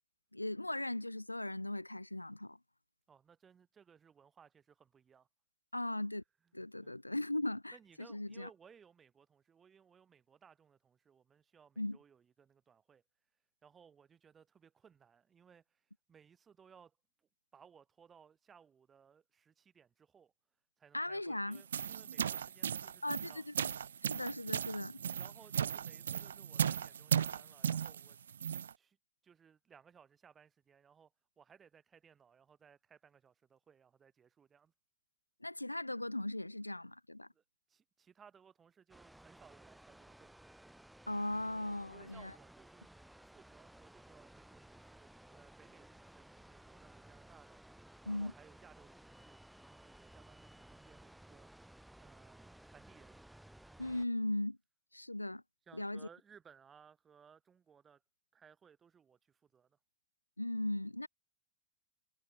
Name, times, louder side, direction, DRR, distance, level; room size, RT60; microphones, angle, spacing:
voice 1, 0.3-2.6 5.7-6.2 6.5-8.5 11.8-12.0 20.9-21.6 23.0-23.7 24.0-25.0 35.4-37.3 41.1-42.3 48.1-48.3 53.8-54.6 54.9-55.4 55.7-56.1 60.4-61.1, left 1 dB, 85° left, 1.0 m, -38 dB
voice 2, 3.1-5.3 6.8-7.0 7.7-13.0 13.6-20.3 20.8-23.4 25.2-28.2 28.8-29.0 29.2-34.7 37.2-37.4 37.7-40.3 41.9-42.9 43.2-47.6 48.0-51.5 52.0-53.2 55.7-58.0 58.3-59.8, right 7 dB, 20° right, 6.3 m, -63 dB
sound 1, 21.5-28.7, right 8 dB, 65° right, 0.3 m, -36 dB
sound 2, 38.9-54.1, right 1 dB, 5° right, 3.7 m, -58 dB
figure-of-eight pair, 90°, 0 cm